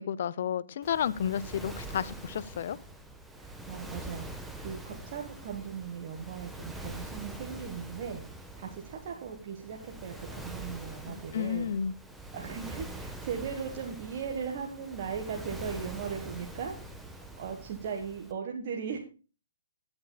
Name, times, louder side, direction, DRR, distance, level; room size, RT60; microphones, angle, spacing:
voice 1, 0.0-2.8 11.1-11.9, left 8 dB, 50° left, 0.6 m, -32 dB
Waves surf, 0.8-18.3, right 1 dB, ahead, 1.2 m, -44 dB
voice 2, 3.4-4.3 4.6-8.2 8.5-11.7 12.3-16.7 17.4-19.0, right 6 dB, 40° right, 1.4 m, -38 dB
17.0 x 8.8 x 2.3 m
figure-of-eight pair, 130°, 0 cm